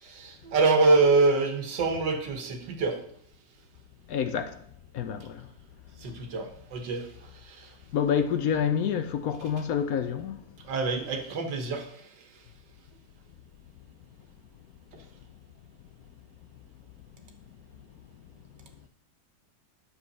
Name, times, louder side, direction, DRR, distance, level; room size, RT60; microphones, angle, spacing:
voice 1, 0.0-3.0 6.0-7.1 7.4-7.7 10.7-11.9, right 3 dB, 75° right, 1.9 m, -25 dB
voice 2, 4.1-4.6 4.9-5.4 7.9-10.4, left 8 dB, 65° left, 0.9 m, -28 dB
9.8 x 7.0 x 4.1 m
omnidirectional pair, 1.9 m